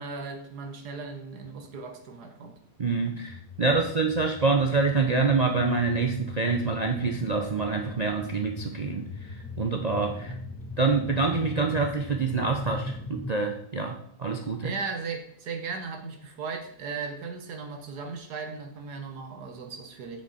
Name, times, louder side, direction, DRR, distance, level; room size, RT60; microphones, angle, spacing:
voice 1, 0.0-2.6 3.7-3.9 10.2-10.4 14.6-20.2, right 4 dB, 85° right, 4 dB, 1.8 m, -37 dB
voice 2, 2.8-10.3 10.8-14.7, right 4 dB, 55° right, 3 dB, 0.4 m, -26 dB
sound 1, 3.3-13.3, left 2 dB, 20° left, 0.4 m, -39 dB
7.8 x 6.8 x 4.2 m, 0.66 s
omnidirectional pair, 1.7 m